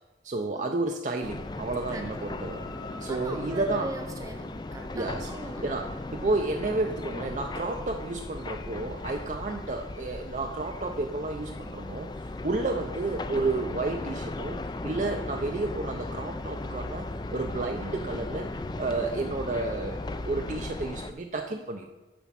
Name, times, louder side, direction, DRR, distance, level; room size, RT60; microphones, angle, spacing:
voice 1, 0.2-2.6 3.0-3.9 4.9-5.3 5.6-21.9, right 3 dB, 40° right, 3 dB, 0.5 m, -31 dB
sound 1, 1.2-21.1, left 2 dB, 25° left, 0.4 m, -37 dB
sound 2, 1.3-5.4, left 2 dB, 50° left, 1.4 m, -45 dB
voice 2, 1.9-2.3 3.1-5.7, right 1 dB, 20° right, 5 dB, 0.9 m, -40 dB
7.1 x 7.0 x 5.8 m, 1.1 s
head